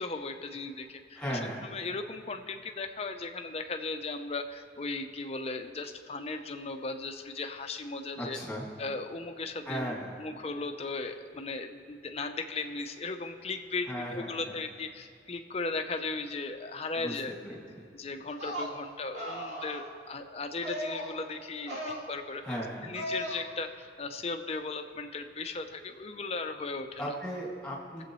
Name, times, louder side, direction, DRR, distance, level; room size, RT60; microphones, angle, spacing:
voice 1, 0.0-8.4 8.8-9.9 10.2-17.3 17.9-22.6 22.9-27.1, left 3 dB, 35° left, 6 dB, 0.6 m, -37 dB
voice 2, 1.2-1.6 8.2-8.7 9.6-10.1 13.9-14.4 17.0-17.1 17.4-17.9 22.4-22.9 27.0-28.0, equal, 5° left, -4 dB, 2.3 m, -36 dB
sound 1, 18.3-18.7 19.1-19.9 20.6-21.1 21.6-22.0 22.9-23.4, equal, 65° right, 3.0 m, -36 dB
21.5 x 7.7 x 3.1 m, 2.5 s
head